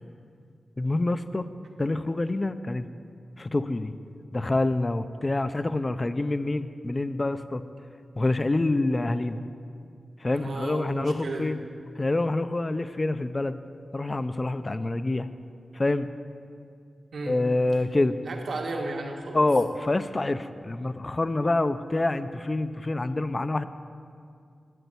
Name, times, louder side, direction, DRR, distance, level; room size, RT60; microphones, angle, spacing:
voice 1, 0.8-1.5 1.8-2.9 3.4-3.9 4.3-7.6 8.2-9.4 10.2-11.6 12.0-13.6 13.9-15.3 15.7-16.1 17.3-18.2 19.3-23.7, left 2 dB, 30° left, 11 dB, 0.5 m, -26 dB
voice 2, 10.3-11.5 17.1-17.4 18.2-19.4, right 2 dB, 75° right, 1 dB, 1.8 m, -34 dB
12.5 x 8.0 x 9.4 m, 2.3 s
wide cardioid pair, 90°, 0 cm